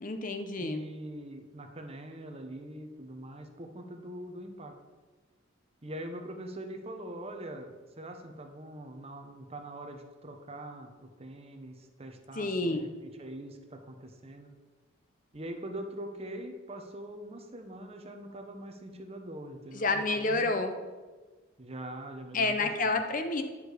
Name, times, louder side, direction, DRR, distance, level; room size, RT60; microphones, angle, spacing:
voice 1, 0.0-0.8 12.4-12.8 19.7-20.7 22.3-23.4, left 3 dB, 45° left, 7 dB, 0.8 m, -29 dB
voice 2, 0.6-4.7 5.8-14.5 15.3-20.5 21.6-23.0, right 1 dB, 30° right, 5 dB, 0.9 m, -43 dB
10.0 x 6.4 x 5.0 m, 1.3 s
head